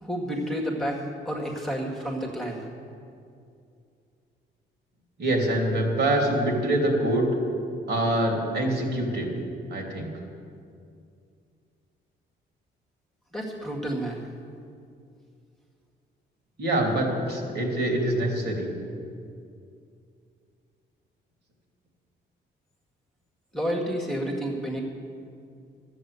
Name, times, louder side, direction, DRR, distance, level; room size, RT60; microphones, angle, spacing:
voice 1, 0.0-2.6 13.3-14.2 23.5-24.8, equal, ahead, -2 dB, 1.9 m, -30 dB
voice 2, 5.2-7.3 7.9-9.3 9.7-10.1 16.6-18.7, right 1 dB, 55° right, 0 dB, 3.1 m, -25 dB
12.0 x 7.8 x 8.3 m, 2.4 s
cardioid pair, 90°, 20 cm